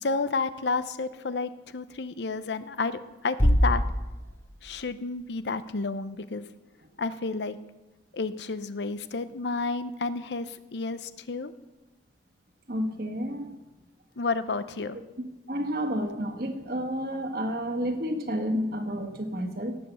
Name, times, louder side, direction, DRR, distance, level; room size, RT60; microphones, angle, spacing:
voice 1, 0.0-3.8 4.6-6.5 7.0-7.6 8.1-11.5 14.2-15.0, left 4 dB, 80° left, 13 dB, 0.7 m, -31 dB
Bass drum, 3.4-5.1, equal, 15° left, 1.0 m, -25 dB
voice 2, 12.7-13.6 15.5-19.8, equal, 55° right, 5 dB, 1.6 m, -30 dB
17.5 x 7.8 x 7.0 m, 1.1 s
head